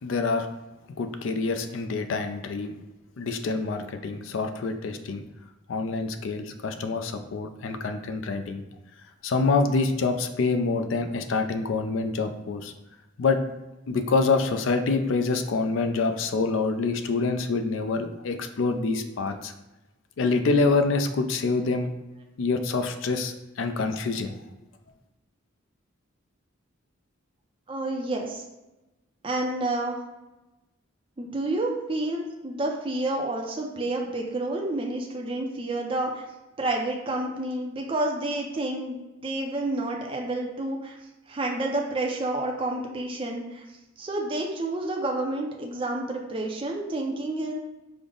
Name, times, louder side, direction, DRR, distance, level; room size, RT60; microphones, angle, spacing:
voice 1, 0.0-0.5 0.9-2.7 3.2-5.2 5.7-8.6 9.2-12.7 13.2-13.4 13.9-19.5 20.2-21.9 22.4-24.4, left 3 dB, 70° left, 8 dB, 0.4 m, -26 dB
voice 2, 27.7-28.4 29.2-30.0 31.2-36.3 36.6-41.0 41.3-43.6 44.0-47.5, right 2 dB, 25° right, 0 dB, 0.4 m, -29 dB
5.0 x 2.0 x 3.7 m, 1.0 s
head